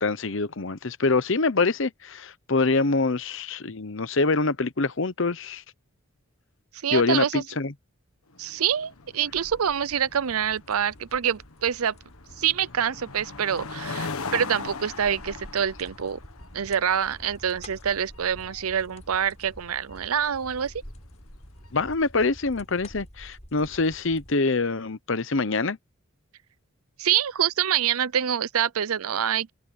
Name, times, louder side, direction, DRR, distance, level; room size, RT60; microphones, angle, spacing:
voice 1, 0.0-5.6 6.9-7.7 21.7-25.8, left 3 dB, 60° left, 0.9 m, -25 dB
voice 2, 6.8-7.4 8.4-11.9 12.4-16.2 16.5-20.7 27.0-29.5, right 8 dB, 90° right, 0.6 m, -26 dB
sound 1, 8.3-21.8, left 4 dB, 85° left, 1.5 m, -41 dB
sound 2, 8.9-24.4, equal, 30° left, 7.4 m, -48 dB
head